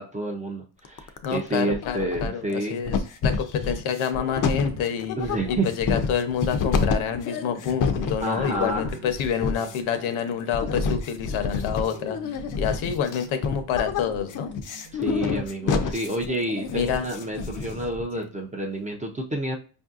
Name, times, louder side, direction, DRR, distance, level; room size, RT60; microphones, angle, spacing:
voice 1, 0.0-2.8 5.2-5.7 8.2-8.9 14.9-19.6, right 2 dB, 15° right, 0 dB, 0.3 m, -29 dB
sound 1, 0.8-1.4 1.7-2.5 2.9-18.0, left 5 dB, 40° left, 0.4 m, -28 dB
voice 2, 1.2-3.0 3.2-5.2 5.5-14.5 16.7-17.1 18.2-18.3, left 8 dB, 75° left, 8 dB, 0.8 m, -28 dB
sound 2, 3.8-17.8, right 6 dB, 55° right, 0.9 m, -49 dB
5.2 x 2.6 x 2.4 m, 0.37 s
cardioid pair, 140°, 49 cm